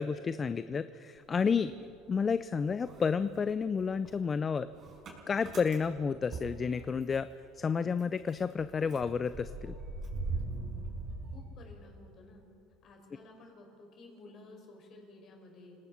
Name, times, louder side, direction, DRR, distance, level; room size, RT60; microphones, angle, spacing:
voice 1, 0.0-1.7 2.1-4.7 5.3-7.3 7.6-9.7, left 5 dB, 25° left, 13 dB, 0.5 m, -31 dB
Motor vehicle (road) / Engine starting, 1.2-2.4 2.7-7.3 7.7-7.8 8.0-12.1, right 3 dB, 40° right, 5.6 m, -41 dB
voice 2, 11.3-12.4 12.8-15.8, left 2 dB, 45° left, 1 dB, 5.9 m, -53 dB
28.5 x 18.5 x 5.9 m, 2.8 s
supercardioid pair, 115°, 0 cm